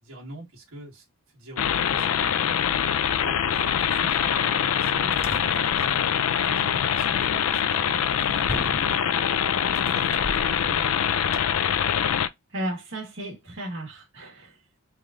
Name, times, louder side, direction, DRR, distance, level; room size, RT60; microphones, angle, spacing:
voice 1, 0.0-1.1 1.3-2.8 3.2-5.8 6.3-9.3 9.7-11.1, right 1 dB, 80° right, 1.3 m, -44 dB
sound 1, 1.6-12.3, left 8 dB, 90° left, 0.4 m, -24 dB
sound 2, 4.1-11.4, left 1 dB, 10° left, 0.4 m, -42 dB
voice 2, 12.5-14.5, right 1 dB, 60° right, 1.4 m, -34 dB
3.3 x 2.5 x 3.5 m
head